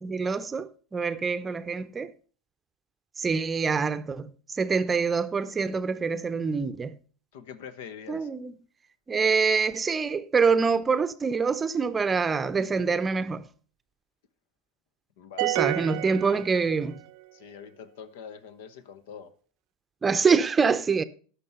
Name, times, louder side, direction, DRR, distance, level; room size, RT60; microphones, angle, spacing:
voice 1, 0.0-2.1 3.2-4.3 4.6-7.0 8.1-8.5 9.1-13.4 15.4-16.9 20.0-21.0, right 5 dB, 20° right, 0.7 m, -25 dB
voice 2, 7.3-8.3 15.2-15.5 17.3-19.3, left 7 dB, 70° left, 0.9 m, -44 dB
sound 1, 15.4-17.1, right 19 dB, 65° right, 0.5 m, -29 dB
12.0 x 5.9 x 5.3 m
hypercardioid pair, 90°, 0 cm